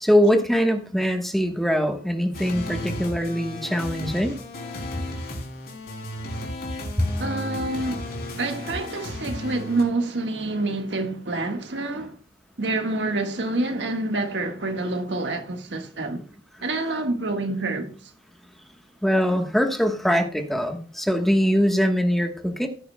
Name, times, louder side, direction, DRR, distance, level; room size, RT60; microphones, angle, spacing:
voice 1, 0.0-4.4 7.0-7.1 19.0-22.7, equal, ahead, 1.2 m, -22 dB
sound 1, 2.3-9.8, left 1 dB, 60° left, 3.2 m, -34 dB
voice 2, 7.2-12.2 12.6-16.2 16.6-18.1, right 2 dB, 85° right, 1.6 m, -27 dB
16.0 x 9.5 x 2.2 m
head